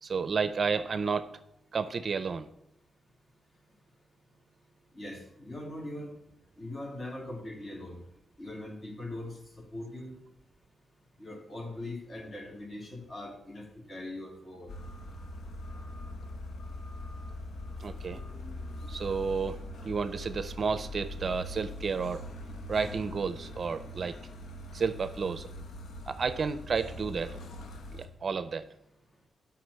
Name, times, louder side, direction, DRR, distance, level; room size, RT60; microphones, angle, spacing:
voice 1, 0.0-1.3 1.7-2.5 17.8-18.2 18.9-22.2 22.7-24.2 24.7-25.5 26.1-27.4 27.9-28.6, right 5 dB, 50° right, 13 dB, 0.5 m, -31 dB
voice 2, 4.9-6.1 6.6-8.0 8.4-10.2 11.2-14.7, left 1 dB, 35° left, 1 dB, 2.7 m, -41 dB
sound 1, 14.7-28.0, left 1 dB, 75° left, 1.2 m, -42 dB
7.8 x 5.8 x 6.8 m, 0.80 s
cardioid pair, 85°, 0 cm